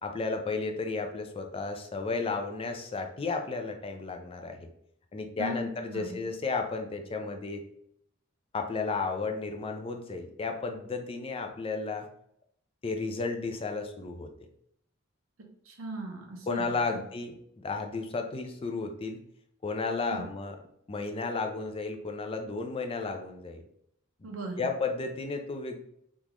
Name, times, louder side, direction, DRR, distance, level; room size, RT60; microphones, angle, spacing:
voice 1, 0.0-4.6 5.1-7.6 8.5-12.1 12.8-14.3 16.5-19.2 19.6-20.6 20.9-23.6 24.6-25.8, left 4 dB, 25° left, 5 dB, 0.4 m, -33 dB
voice 2, 5.9-6.2 15.7-17.0 20.1-20.3 24.2-24.7, right 1 dB, 80° right, 1 dB, 0.9 m, -38 dB
3.6 x 2.4 x 3.0 m, 0.70 s
head